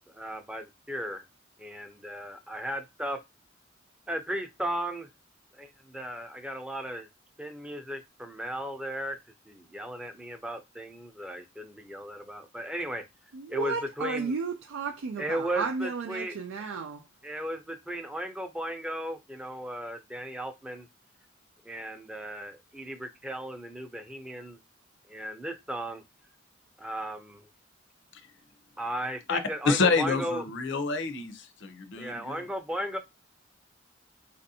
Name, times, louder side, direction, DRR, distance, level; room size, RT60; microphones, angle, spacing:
voice 1, 0.1-1.2 1.6-3.2 4.1-5.1 5.5-7.1 7.4-9.2 9.5-13.0 13.5-14.4 15.2-16.4 17.2-20.9 21.6-24.6 25.1-26.0 26.8-27.5 28.8-30.5 32.0-33.0, right 1 dB, 5° right, 0.5 m, -36 dB
voice 2, 13.3-17.0, right 4 dB, 85° right, 0.4 m, -33 dB
voice 3, 29.6-32.4, left 4 dB, 65° left, 0.6 m, -27 dB
4.2 x 2.5 x 2.7 m
head